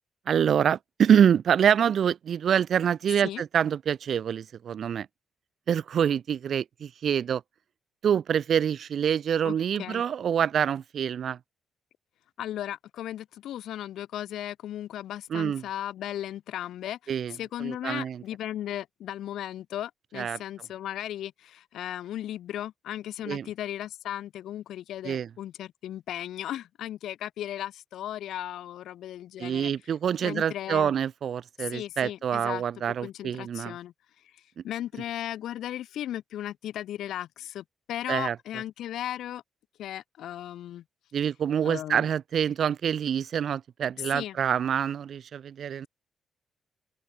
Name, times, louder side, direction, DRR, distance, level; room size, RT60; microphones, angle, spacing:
voice 1, 0.3-5.1 5.7-7.4 8.0-11.4 15.3-15.6 17.1-18.2 20.1-20.4 23.3-23.5 25.0-25.3 29.4-33.8 34.6-34.7 38.1-38.4 41.1-45.9, right 8 dB, 55° right, 1.4 m, -26 dB
voice 2, 9.4-10.0 12.4-29.7 30.2-30.9 31.6-32.6 33.0-33.9 34.6-39.4 39.8-40.8 41.6-42.1 44.0-44.4, left 12 dB, 90° left, 3.6 m, -36 dB
open air
cardioid pair, 140°, 0 cm